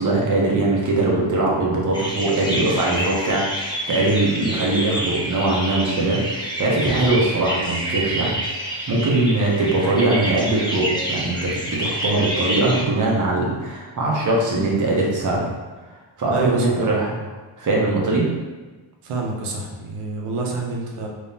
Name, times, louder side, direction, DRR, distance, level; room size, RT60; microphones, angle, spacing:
voice 1, 0.0-17.1 17.6-18.3, right 2 dB, 40° right, -3 dB, 0.9 m, -21 dB
sound 1, 1.9-12.8, right 1 dB, 10° left, 0.4 m, -28 dB
voice 2, 16.3-16.9 19.0-21.1, right 3 dB, 85° right, 0 dB, 0.8 m, -27 dB
3.5 x 3.0 x 2.7 m, 1.3 s
wide cardioid pair, 150°, 50 cm